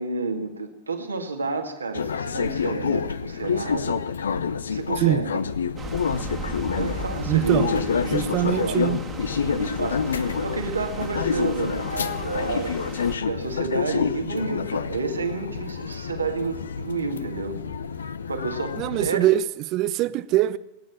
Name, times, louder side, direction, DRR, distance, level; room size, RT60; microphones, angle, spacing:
voice 1, 0.0-4.0 4.7-5.4 6.8-8.9 9.5-12.8 13.3-17.6 18.0-19.2, right 4 dB, 75° right, 2.0 m, -30 dB
sound 1, 1.9-19.1, left 6 dB, 70° left, 0.7 m, -28 dB
sound 2, 5.8-13.2, right 4 dB, 20° right, 1.8 m, -36 dB
voice 2, 7.3-7.8 8.1-9.0 18.8-19.4 19.7-20.6, right 14 dB, 40° right, 0.7 m, -23 dB
19.5 x 9.6 x 7.4 m
figure-of-eight pair, 90°, 0 cm